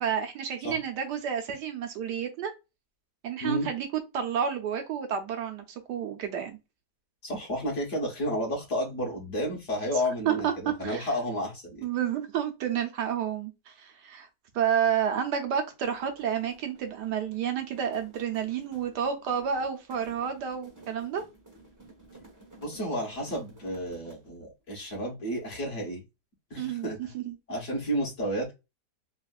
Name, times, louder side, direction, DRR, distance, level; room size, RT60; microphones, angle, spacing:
voice 1, 0.0-2.5 3.2-3.9 4.1-6.6 10.3-10.5 10.8-11.1 11.8-14.3 14.5-21.2 26.6-26.9 27.1-27.3, right 8 dB, 75° right, 1.3 m, -30 dB
voice 2, 7.2-11.8 22.6-26.0 26.5-27.1 27.5-28.5, equal, 50° left, 1.3 m, -31 dB
sound 1, 15.7-24.4, right 2 dB, 15° right, 0.7 m, -54 dB
3.5 x 2.4 x 2.3 m
omnidirectional pair, 1.9 m